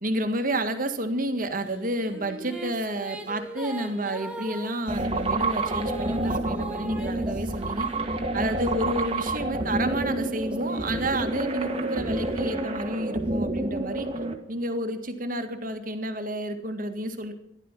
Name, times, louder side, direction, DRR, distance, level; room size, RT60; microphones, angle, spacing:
voice 1, 0.0-7.9 8.3-14.1 14.5-17.3, right 1 dB, 45° right, 7 dB, 1.8 m, -30 dB
sound 1, 1.7-8.7 9.3-13.0, equal, 5° right, 2.1 m, -41 dB
sound 2, 4.9-14.3, right 2 dB, 30° right, 1.7 m, -29 dB
15.5 x 12.0 x 7.4 m, 0.75 s
head